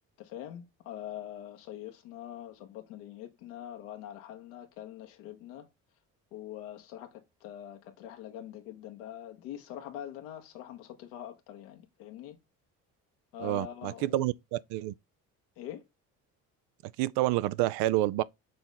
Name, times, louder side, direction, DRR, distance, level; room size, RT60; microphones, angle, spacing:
voice 1, 0.2-5.7 6.3-12.4 13.3-14.3 15.6-15.8, left 11 dB, 80° left, 1.3 m, -44 dB
voice 2, 13.4-14.9 17.0-18.2, right 16 dB, 70° right, 0.6 m, -28 dB
6.7 x 4.1 x 3.8 m
hypercardioid pair, 55°, 42 cm